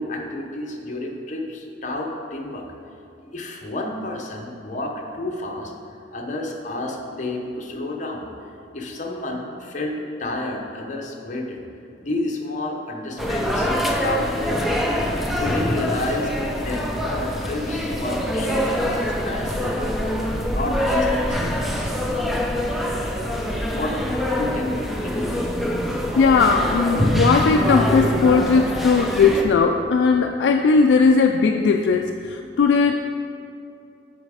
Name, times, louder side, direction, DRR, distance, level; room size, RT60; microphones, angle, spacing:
voice 1, 0.0-2.7 3.2-5.7 6.1-8.3 8.7-11.6 11.9-13.7 14.0-20.0 20.5-21.9 23.4-24.0 24.3-25.4, left 2 dB, 45° left, 1 dB, 0.8 m, -30 dB
sound 1, 13.2-29.4, equal, ahead, 0.5 m, -24 dB
voice 2, 25.9-32.9, left 4 dB, 75° left, 4 dB, 0.3 m, -18 dB
7.2 x 4.2 x 4.8 m, 2.6 s
head